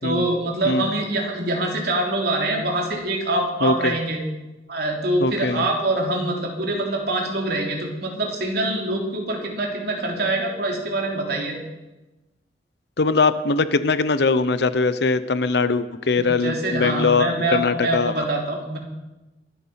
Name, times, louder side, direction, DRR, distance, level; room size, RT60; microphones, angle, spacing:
voice 1, 0.0-4.2 4.7-11.6 16.3-18.8, right 2 dB, 60° right, 0 dB, 3.4 m, -24 dB
voice 2, 3.6-3.9 5.2-5.6 13.0-18.1, left 4 dB, 65° left, 13 dB, 0.8 m, -21 dB
23.0 x 8.1 x 5.8 m, 1.1 s
head